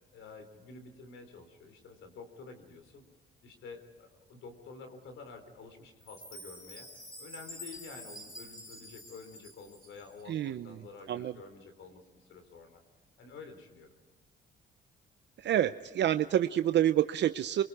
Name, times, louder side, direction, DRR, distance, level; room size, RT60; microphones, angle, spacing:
voice 1, 0.1-3.0 3.4-6.9 7.2-12.8 13.2-13.9, left 4 dB, 75° left, 7 dB, 3.9 m, -50 dB
Chime, 6.0-10.2, left 1 dB, 20° left, 8.0 m, -48 dB
voice 2, 10.3-10.8 11.1-11.3 15.4-17.6, right 11 dB, 60° right, 11 dB, 0.6 m, -28 dB
24.5 x 24.0 x 4.9 m, 1.4 s
cardioid pair, 90°, 20 cm